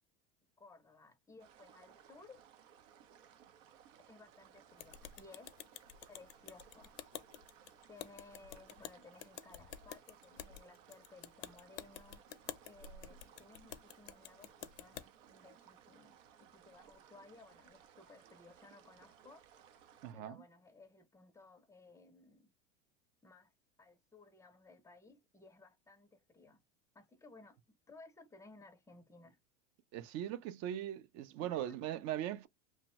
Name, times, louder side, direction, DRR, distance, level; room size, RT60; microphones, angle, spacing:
voice 1, 0.6-2.4 4.1-5.6 6.1-7.0 7.9-12.2 12.6-19.4 20.1-22.5 23.2-23.5 23.8-26.6 26.9-27.6 27.9-29.4 31.4-32.0, left 3 dB, 10° left, 0.5 m, -59 dB
sound 1, 1.4-20.1, right 9 dB, 80° right, 0.7 m, -62 dB
sound 2, 4.8-15.1, left 10 dB, 75° left, 0.6 m, -50 dB
voice 2, 20.0-20.4 29.9-32.5, right 11 dB, 45° right, 0.5 m, -40 dB
2.7 x 2.1 x 2.9 m
supercardioid pair, 115°, 37 cm